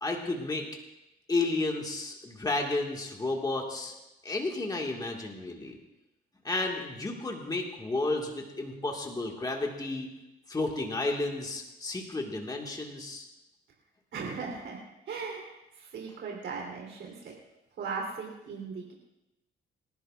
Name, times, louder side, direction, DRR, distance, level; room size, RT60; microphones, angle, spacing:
voice 1, 0.0-0.7 1.3-3.9 4.2-5.8 6.4-10.1 10.5-13.3, left 2 dB, 20° left, 0 dB, 1.9 m, -32 dB
voice 2, 14.1-17.3 17.8-18.9, right 5 dB, 70° right, -1 dB, 3.6 m, -38 dB
27.0 x 11.5 x 2.5 m, 0.95 s
cardioid pair, 90°, 20 cm